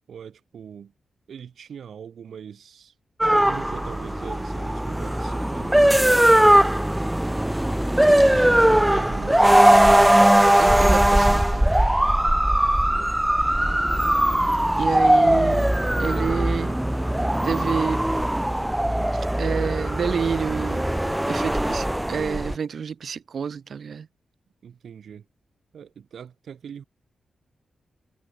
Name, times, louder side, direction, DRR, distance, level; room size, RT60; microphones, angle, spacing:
voice 1, 0.1-0.9 1.3-2.9 3.2-5.8 8.1-10.2 12.7-13.3 24.6-25.3 25.7-26.8, right 8 dB, 75° right, 2.0 m, -41 dB
sound 1, 3.2-22.6, right 1 dB, 5° right, 0.3 m, -19 dB
voice 2, 10.6-11.8 14.8-15.7 16.0-16.8 17.4-18.0 19.1-20.8 21.3-24.1, right 6 dB, 55° right, 0.7 m, -28 dB
wide cardioid pair, 165°, 0 cm